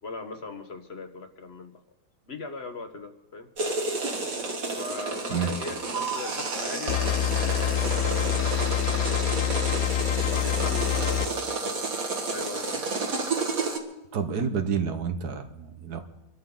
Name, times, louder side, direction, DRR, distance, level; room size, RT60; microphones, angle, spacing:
voice 1, 0.0-1.8 2.3-3.5 4.7-9.9 10.2-12.0 12.3-12.9, left 3 dB, 45° left, 6 dB, 1.4 m, -40 dB
sound 1, 3.6-13.8, right 3 dB, 60° right, 2.2 m, -31 dB
sound 2, 6.9-11.3, left 11 dB, 70° left, 1.1 m, -26 dB
voice 2, 14.1-16.0, right 6 dB, 90° right, 7 dB, 1.8 m, -29 dB
25.5 x 13.0 x 3.9 m, 0.93 s
omnidirectional pair, 1.6 m